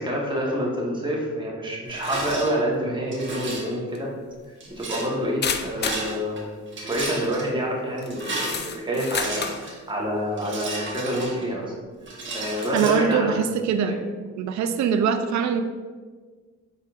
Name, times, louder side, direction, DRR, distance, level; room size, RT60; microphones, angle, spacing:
voice 1, 0.0-4.1 4.8-6.4 6.9-11.7 12.3-13.3 13.9-14.0, equal, 15° right, -4 dB, 1.2 m, -27 dB
Rattle, 1.9-2.5 3.1-3.8 4.6-5.1 5.7-6.4 6.7-7.4 8.0-9.8 10.4-11.7 12.1-12.9, right 2 dB, 40° right, 1.3 m, -33 dB
sound 1, 4.0-4.1 5.4-6.1 7.0-7.3 8.0-9.6, left 6 dB, 35° left, 0.4 m, -30 dB
voice 2, 12.7-14.0 14.4-15.6, right 7 dB, 65° right, 9 dB, 0.5 m, -23 dB
5.0 x 4.1 x 2.4 m, 1.5 s
cardioid pair, 90°, 30 cm